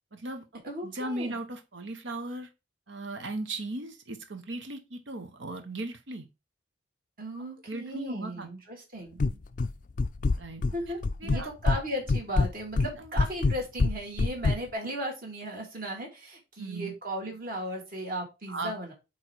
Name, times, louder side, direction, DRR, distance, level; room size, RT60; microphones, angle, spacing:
voice 1, 0.1-2.5 2.9-6.3 7.7-8.5 10.3-10.6 11.2-11.5 12.8-13.2 16.6-16.9 18.5-18.9, right 2 dB, 70° right, 7 dB, 1.0 m, -37 dB
voice 2, 0.6-1.4 7.2-9.4 10.7-18.9, right 1 dB, 45° right, 0 dB, 2.7 m, -36 dB
sound 1, 9.2-9.7 10.0-10.7 11.0-11.8 12.1-14.6, left 3 dB, 40° left, 0.4 m, -25 dB
8.5 x 3.2 x 4.6 m, 0.26 s
head